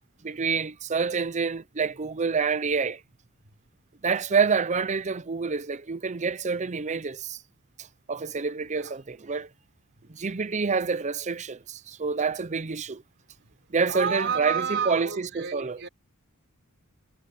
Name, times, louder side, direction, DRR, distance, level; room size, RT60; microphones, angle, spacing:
voice 1, 0.2-3.0 4.0-7.4 8.1-9.5 10.1-13.0 13.7-15.8, right 5 dB, 35° right, 0.6 m, -27 dB
voice 2, 13.9-15.9, right 6 dB, 55° right, 4.5 m, -30 dB
head